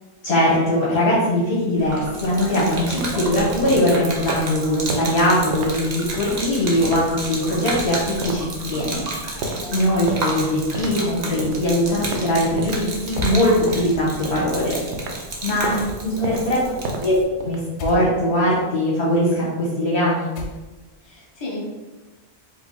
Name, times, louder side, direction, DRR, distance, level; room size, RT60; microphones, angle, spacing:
voice 1, 0.2-9.1 9.4-14.8 15.4-15.7 16.0-16.6 17.0-17.1 17.4-20.3, left 1 dB, 70° left, -8 dB, 1.3 m, -21 dB
Gurgling / Liquid, 1.8-17.2, right 2 dB, 45° right, 0.7 m, -32 dB
sound 1, 2.8-12.9 13.2-15.3 15.6-15.8 16.2-18.0, right 2 dB, 80° right, 0.9 m, -32 dB
voice 2, 9.3-10.0 15.5-17.0 21.0-21.6, equal, 25° left, -5 dB, 1.0 m, -35 dB
sound 2, 13.1-13.4 15.7-16.3 17.8-18.1 20.3-20.9, left 2 dB, 90° left, 0.9 m, -31 dB
4.6 x 2.0 x 3.7 m, 1.2 s
omnidirectional pair, 1.1 m